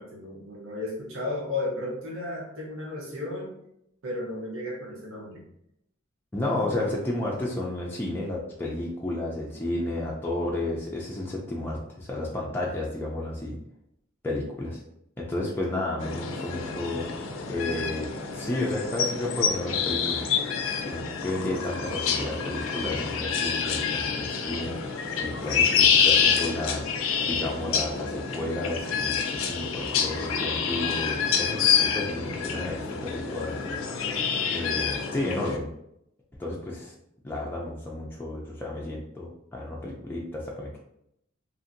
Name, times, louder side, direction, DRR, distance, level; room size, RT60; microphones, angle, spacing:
voice 1, 0.0-3.6 4.0-5.4, left 2 dB, 85° right, -3 dB, 0.9 m, -34 dB
voice 2, 6.3-13.6 14.2-14.8 15.2-17.0 17.5-20.3 20.8-24.8 25.2-26.8 27.2-33.8 34.5-35.7 36.4-36.9 37.2-40.8, left 1 dB, 10° left, -4 dB, 0.3 m, -32 dB
sound 1, 16.0-35.6, left 6 dB, 90° left, 0.4 m, -27 dB
2.8 x 2.6 x 2.5 m, 0.77 s
head